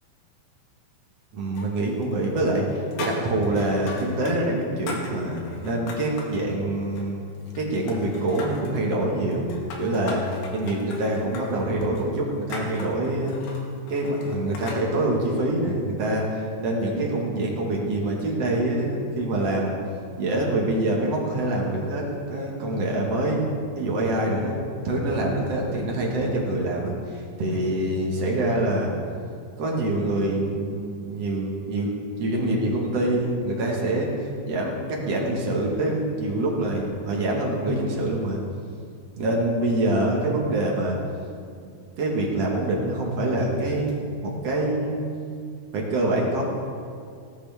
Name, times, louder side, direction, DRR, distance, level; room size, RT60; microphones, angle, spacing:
voice 1, 1.3-2.7 3.0-7.2 7.6-10.2 10.5-13.4 13.9-19.8 20.2-23.5 23.8-24.6 24.8-28.9 29.6-31.9 32.2-34.1 34.4-38.4 39.2-41.0 42.0-45.0 45.7-46.4, right 1 dB, 55° right, -2 dB, 1.9 m, -25 dB
sound 1, 1.6-2.1 2.4-4.4 4.6-6.4 6.8-7.6 7.9-8.8 9.3-14.8, left 3 dB, 85° left, 3.7 m, -39 dB
17.5 x 11.5 x 3.5 m, 2.3 s
omnidirectional pair, 4.8 m